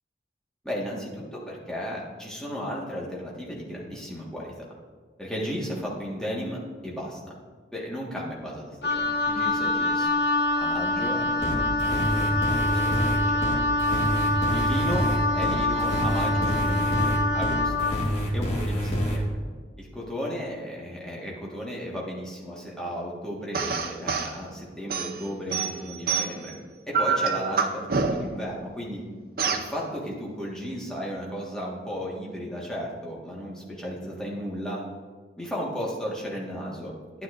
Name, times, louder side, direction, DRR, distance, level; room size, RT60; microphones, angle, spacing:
voice 1, 0.6-4.5 5.2-7.2 7.7-10.1 10.6-13.6 14.5-15.1 15.3-17.9 18.3-19.4 19.8-26.5 26.9-27.8 28.1-29.0 29.5-34.8 35.4-36.9, equal, 5° left, -4 dB, 1.5 m, -34 dB
Wind instrument woodwind instrument, 8.8-18.0, left 2 dB, 60° left, 1.0 m, -25 dB
sound 1, 11.4-19.2, equal, 35° left, 1.4 m, -27 dB
sound 2, 23.5-24.3 24.9-26.5 26.9-28.4 29.4-29.7, right 5 dB, 55° right, 0.6 m, -26 dB
10.0 x 9.2 x 2.5 m, 1.5 s
head